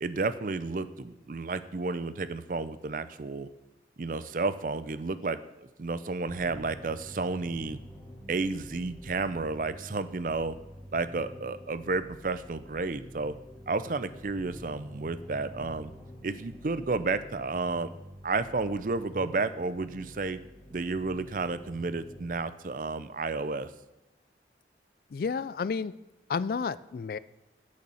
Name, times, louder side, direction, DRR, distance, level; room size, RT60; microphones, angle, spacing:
voice 1, 0.0-3.5 4.0-7.8 8.3-10.6 10.9-13.3 13.7-15.9 16.2-17.9 18.2-20.4 20.7-23.7, right 3 dB, 45° right, 14 dB, 0.5 m, -31 dB
sound 1, 6.3-22.3, equal, 15° left, 1.1 m, -48 dB
voice 2, 25.1-25.9 26.3-27.2, left 5 dB, 55° left, 17 dB, 0.3 m, -31 dB
8.4 x 6.8 x 6.3 m, 1.0 s
head